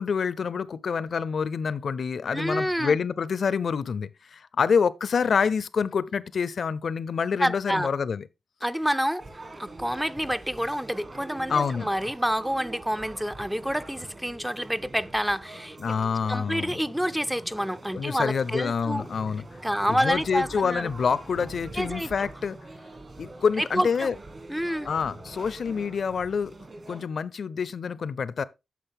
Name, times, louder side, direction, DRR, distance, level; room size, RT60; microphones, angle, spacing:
voice 1, 0.0-8.2 11.5-11.9 15.8-16.7 17.9-19.4 19.9-22.6 23.2-24.1 24.8-26.5 26.9-28.4, left 6 dB, 65° left, 0.6 m, -27 dB
voice 2, 2.3-3.0 7.4-7.9 8.6-9.3 9.6-15.8 16.3-19.1 19.6-20.9 21.7-22.1 23.6-24.1 24.5-24.9, equal, 5° right, 0.4 m, -28 dB
sound 1, 9.2-27.1, right 2 dB, 50° right, 1.8 m, -44 dB
9.3 x 6.5 x 3.5 m
cardioid pair, 75°, 0 cm